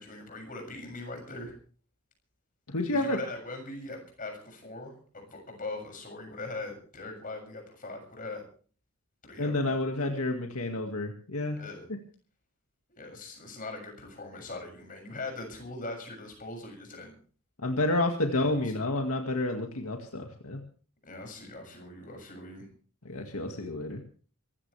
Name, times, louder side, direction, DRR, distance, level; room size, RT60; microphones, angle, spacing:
voice 1, 0.0-1.5 2.9-8.5 9.2-9.8 11.6-11.9 12.9-17.2 18.4-18.7 21.1-22.7, left 2 dB, 40° left, 3 dB, 7.1 m, -41 dB
voice 2, 2.7-3.2 9.4-11.6 17.6-20.6 23.1-24.0, left 2 dB, 75° left, 3 dB, 2.1 m, -30 dB
25.0 x 16.0 x 3.4 m, 0.43 s
head